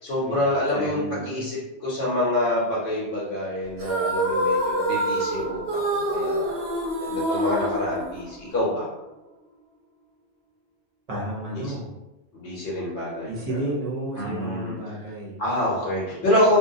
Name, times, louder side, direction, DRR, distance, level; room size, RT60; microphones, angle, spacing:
voice 1, 0.0-5.6 5.9-6.6 7.0-8.8 11.5-11.6 12.3-13.3 14.2-14.7 15.4-16.6, left 1 dB, 65° left, -7 dB, 0.9 m, -26 dB
voice 2, 0.7-1.5 11.1-11.9 13.2-15.4, right 1 dB, 40° right, -4 dB, 0.7 m, -32 dB
sound 1, 3.8-8.6, right 1 dB, 70° right, 0.8 m, -26 dB
2.3 x 2.2 x 2.6 m, 1.0 s
omnidirectional pair, 1.1 m